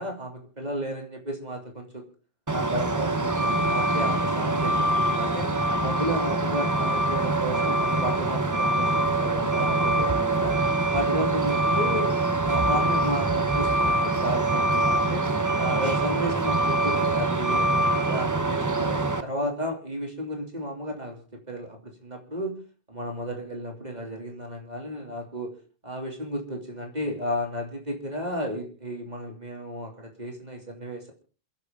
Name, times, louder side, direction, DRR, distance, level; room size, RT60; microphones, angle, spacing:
voice 1, 0.0-2.0 2.5-5.5 5.8-10.6 10.9-12.1 12.5-15.3 15.5-21.2 21.5-22.5 22.9-25.5 25.8-31.1, equal, 45° right, 2 dB, 3.0 m, -33 dB
Truck, 2.5-19.2, right 2 dB, 20° right, 0.9 m, -24 dB
28.5 x 10.5 x 3.8 m, 0.37 s
omnidirectional pair, 1.0 m